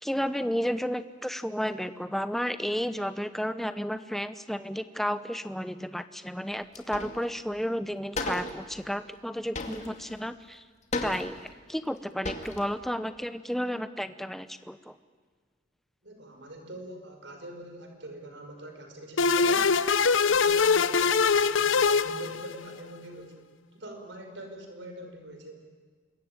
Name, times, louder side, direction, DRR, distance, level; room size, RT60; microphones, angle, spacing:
voice 1, 0.0-10.6 11.0-11.4 11.7-15.0, equal, ahead, 12 dB, 0.8 m, -32 dB
sound 1, 6.7-7.3 7.6-7.7 8.1-8.6 9.5-10.2 10.9-11.5 12.0-12.1 12.2-12.7, left 2 dB, 35° left, 2.2 m, -34 dB
voice 2, 16.0-19.8 20.2-25.6, right 1 dB, 70° right, 4 dB, 5.0 m, -44 dB
sound 2, 19.2-22.8, left 5 dB, 85° left, 0.8 m, -23 dB
26.5 x 22.5 x 9.4 m, 1.5 s
head